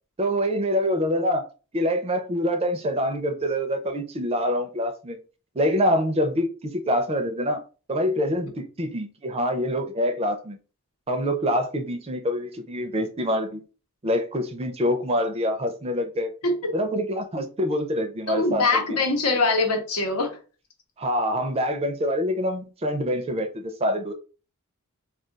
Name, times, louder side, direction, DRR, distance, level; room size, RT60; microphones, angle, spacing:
voice 1, 0.2-1.4 1.7-5.2 5.6-7.6 7.9-10.6 11.1-13.6 14.0-16.3 16.7-19.0 21.0-24.1, equal, 25° right, 0.4 m, -25 dB
voice 2, 16.4-16.7 18.3-20.4, left 3 dB, 85° left, 0.9 m, -23 dB
2.4 x 2.3 x 3.8 m
head